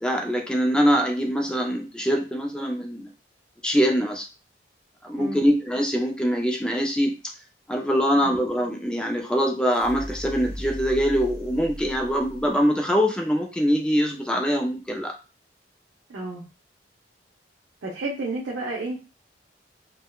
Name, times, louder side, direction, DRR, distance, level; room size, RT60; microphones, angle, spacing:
voice 1, 0.0-3.1 3.6-4.3 5.0-7.1 7.7-15.1, equal, 5° left, 2 dB, 0.3 m, -23 dB
sound 1, 9.7-12.7, equal, 30° left, 0.8 m, -37 dB
voice 2, 16.1-16.4 17.8-19.0, right 2 dB, 80° right, -4 dB, 0.7 m, -31 dB
3.5 x 2.1 x 2.3 m, 0.32 s
head